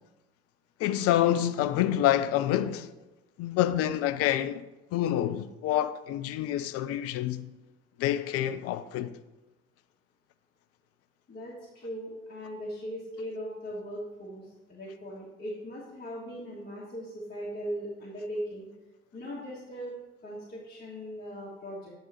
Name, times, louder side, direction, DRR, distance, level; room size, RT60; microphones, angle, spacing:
voice 1, 0.8-2.9 3.4-4.6 4.9-7.5 8.0-9.1, left 12 dB, 50° left, 0.4 m, -27 dB
voice 2, 11.3-18.7 19.1-19.9 20.2-21.9, equal, 30° left, 1.6 m, -39 dB
7.9 x 3.9 x 4.3 m
figure-of-eight pair, 45°, 30 cm